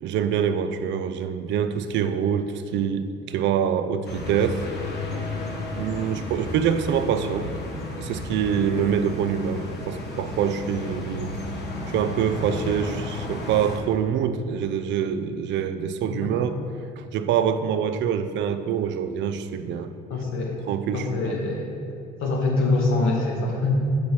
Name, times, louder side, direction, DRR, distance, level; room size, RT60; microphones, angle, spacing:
voice 1, 0.0-4.6 5.8-7.5 8.0-11.3 11.9-16.6 17.0-19.9 20.7-21.4, right 8 dB, 60° right, 10 dB, 0.5 m, -25 dB
sound 1, 4.0-13.8, left 2 dB, 55° left, 1.4 m, -33 dB
voice 2, 16.1-16.5 20.1-20.6 20.9-21.7 22.2-23.8, left 3 dB, 70° left, -1 dB, 1.9 m, -24 dB
7.0 x 5.2 x 6.2 m, 2.4 s
supercardioid pair, 85°, 21 cm